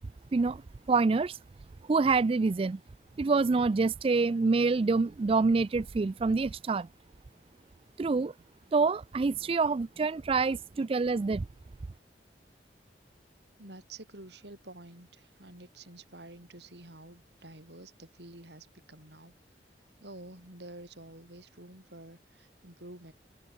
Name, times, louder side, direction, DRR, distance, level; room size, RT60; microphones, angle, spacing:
voice 1, 0.3-0.6 0.9-1.4 1.9-2.8 3.2-6.9 8.0-8.3 8.7-11.5, right 4 dB, 30° right, 0.3 m, -26 dB
voice 2, 13.6-19.3 20.0-23.1, right 2 dB, 75° right, 6.6 m, -49 dB
head